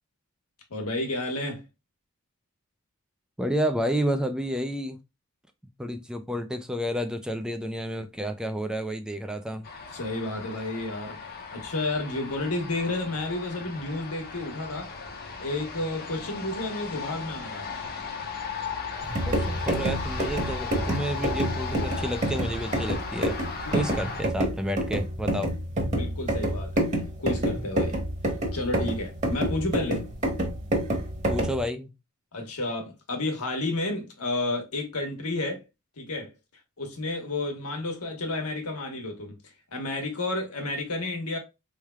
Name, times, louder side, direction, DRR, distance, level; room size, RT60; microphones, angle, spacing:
voice 1, 0.7-1.6 9.9-11.2 11.5-14.9 15.4-17.7 23.6-23.8 25.9-26.9 27.2-28.0 28.5-30.0 32.3-35.6 36.0-36.3 36.8-39.4 39.7-41.4, left 2 dB, 80° left, 1.3 m, -31 dB
voice 2, 3.4-5.0 5.8-9.7 19.2-23.4 23.7-25.5 31.3-31.9, equal, 5° right, 0.4 m, -30 dB
sound 1, 9.6-24.2, left 5 dB, 45° left, 0.9 m, -37 dB
sound 2, 19.0-31.6, right 1 dB, 35° right, 1.3 m, -28 dB
4.3 x 3.3 x 2.3 m
head